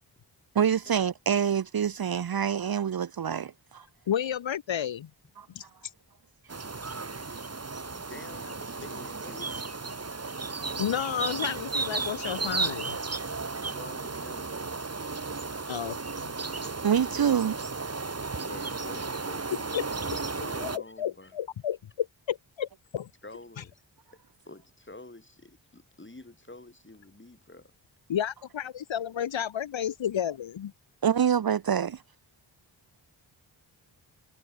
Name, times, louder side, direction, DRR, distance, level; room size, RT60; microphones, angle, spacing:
voice 1, 0.5-3.9 5.4-5.5 16.8-17.6 31.0-32.0, right 8 dB, 50° right, 0.8 m, -26 dB
voice 2, 4.1-5.1 5.5-5.6 10.8-13.0 15.7-16.3 19.7-19.9 20.6-23.1 28.1-30.7, left 9 dB, 70° left, 1.2 m, -31 dB
sound 1, 6.5-20.8, right 4 dB, 30° right, 2.0 m, -34 dB
voice 3, 7.9-9.6 13.6-14.6 18.4-19.7 20.0-21.4 23.2-23.7 24.5-27.7, left 2 dB, 25° left, 6.0 m, -48 dB
supercardioid pair, 40°, 48 cm